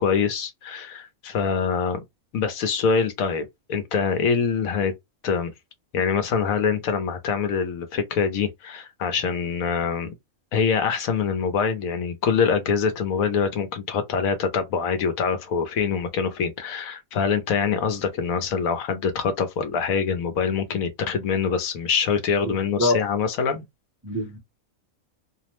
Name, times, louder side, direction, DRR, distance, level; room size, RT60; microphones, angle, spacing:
voice 1, 0.0-2.0 2.3-4.9 5.2-5.5 5.9-10.1 10.5-23.6, left 6 dB, 80° left, 1.1 m, -24 dB
voice 2, 22.4-22.9 24.0-24.4, left 1 dB, 20° right, 0.6 m, -25 dB
2.8 x 2.0 x 2.9 m
omnidirectional pair, 1.4 m